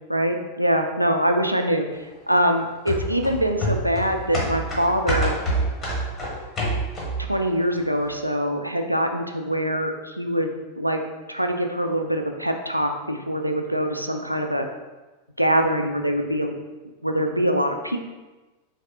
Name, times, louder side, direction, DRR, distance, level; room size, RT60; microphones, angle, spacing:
voice 1, 0.1-5.3 7.3-11.0 11.3-14.7 15.4-16.5 17.0-18.0, equal, 90° right, 4 dB, 0.3 m, -24 dB
sound 1, 2.9-7.3 7.7-7.8, right 1 dB, 25° left, 1.2 m, -26 dB
3.9 x 3.2 x 2.7 m, 1.2 s
figure-of-eight pair, 90°, 0 cm